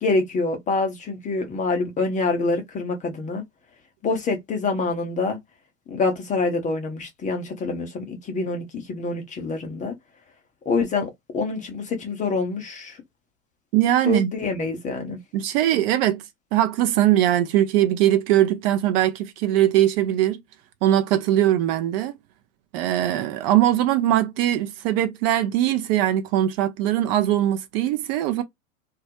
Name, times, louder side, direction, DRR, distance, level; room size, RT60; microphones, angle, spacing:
voice 1, 0.0-3.4 4.0-5.4 5.9-9.9 10.7-13.0 14.0-15.2, left 3 dB, 20° left, 0.5 m, -26 dB
voice 2, 13.7-14.3 15.3-16.2 16.5-20.4 20.8-22.1 22.7-28.4, right 12 dB, 45° right, 0.5 m, -21 dB
2.3 x 2.0 x 2.7 m
hypercardioid pair, 100°, 43 cm